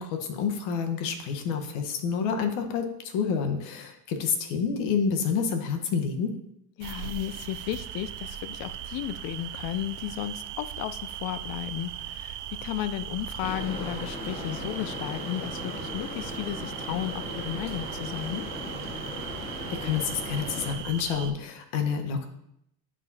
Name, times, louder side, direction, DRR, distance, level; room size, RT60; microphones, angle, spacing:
voice 1, 0.0-6.3 19.7-22.3, left 6 dB, 70° left, 5 dB, 1.3 m, -28 dB
voice 2, 6.8-18.4, left 12 dB, 45° left, 13 dB, 0.5 m, -34 dB
sound 1, 6.8-21.3, right 11 dB, 40° right, 0.5 m, -39 dB
sound 2, 13.4-20.8, left 1 dB, 10° left, 2.4 m, -37 dB
10.5 x 5.0 x 2.8 m, 0.76 s
supercardioid pair, 115°, 49 cm